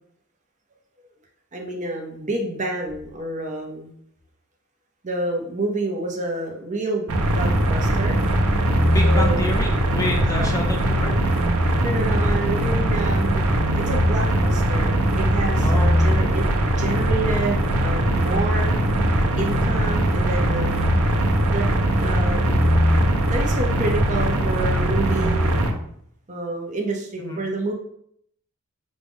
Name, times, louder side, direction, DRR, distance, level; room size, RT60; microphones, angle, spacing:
voice 1, 1.5-3.9 5.0-8.2 9.0-9.5 10.3-10.6 11.8-16.5 16.8-18.7 19.4-20.7 21.5-21.7 22.0-22.6 23.3-25.6 26.3-27.7, right 2 dB, 35° right, 1 dB, 0.7 m, -28 dB
sound 1, 7.1-25.7, right 1 dB, 75° right, 0.6 m, -20 dB
voice 2, 8.9-11.2 15.6-16.0 27.2-27.4, left 1 dB, 15° left, 0 dB, 0.5 m, -28 dB
6.1 x 2.2 x 3.5 m, 0.68 s
head